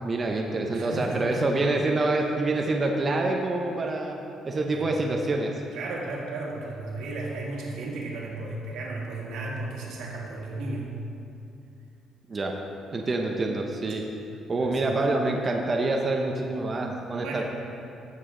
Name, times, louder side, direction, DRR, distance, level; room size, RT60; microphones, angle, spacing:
voice 1, 0.0-4.2 4.4-5.5 12.3-12.5 12.9-14.0 14.5-17.4, right 2 dB, 25° right, 1 dB, 0.7 m, -26 dB
voice 2, 0.7-1.4 4.7-4.9 5.7-10.9 14.6-14.9 17.1-17.4, right 2 dB, 90° right, -3 dB, 2.0 m, -34 dB
14.5 x 7.1 x 3.8 m, 2.7 s
cardioid pair, 165°, 0 cm